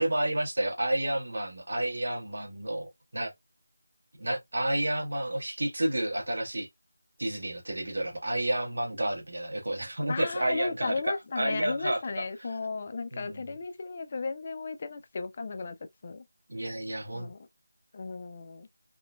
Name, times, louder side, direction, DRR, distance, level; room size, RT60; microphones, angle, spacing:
voice 1, 0.0-3.3 4.2-6.7 7.2-12.3 13.1-13.5 16.5-17.3, right 1 dB, 75° right, 1.2 m, -30 dB
voice 2, 10.1-15.8 16.0-16.3 17.1-17.5 17.9-18.7, left 4 dB, 30° left, 0.4 m, -35 dB
3.7 x 2.2 x 2.3 m
figure-of-eight pair, 175°, 0 cm